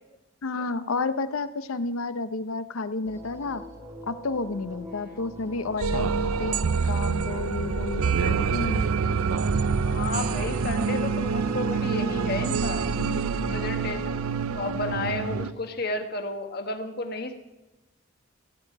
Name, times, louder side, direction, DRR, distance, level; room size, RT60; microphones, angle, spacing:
voice 1, 0.4-3.6 4.1-8.9 13.0-13.6, left 3 dB, 75° left, 12 dB, 0.7 m, -31 dB
sound 1, 3.0-15.3, right 1 dB, 15° right, 1.6 m, -44 dB
sound 2, 5.8-15.5, right 5 dB, 85° right, 0.5 m, -26 dB
voice 2, 9.9-12.8 13.5-14.0 14.5-17.3, left 2 dB, 45° left, 6 dB, 1.2 m, -32 dB
16.0 x 5.4 x 8.5 m, 1.0 s
head